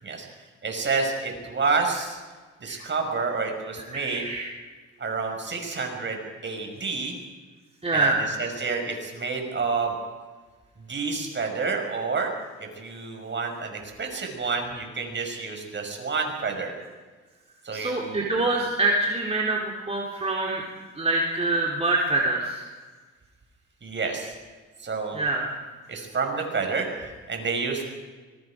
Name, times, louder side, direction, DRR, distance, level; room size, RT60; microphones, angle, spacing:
voice 1, 0.6-2.2 2.6-4.2 5.0-7.2 7.9-8.1 8.4-10.0 10.9-12.3 12.6-16.7 17.6-18.3 23.8-24.3 24.8-25.2 25.9-27.8, right 4 dB, 40° right, 3 dB, 6.0 m, -29 dB
voice 2, 3.9-4.5 7.8-8.3 17.7-20.6 20.9-22.6 25.1-25.6, right 2 dB, 20° right, -2 dB, 3.5 m, -25 dB
25.0 x 22.5 x 5.1 m, 1.4 s
cardioid pair, 90°, 30 cm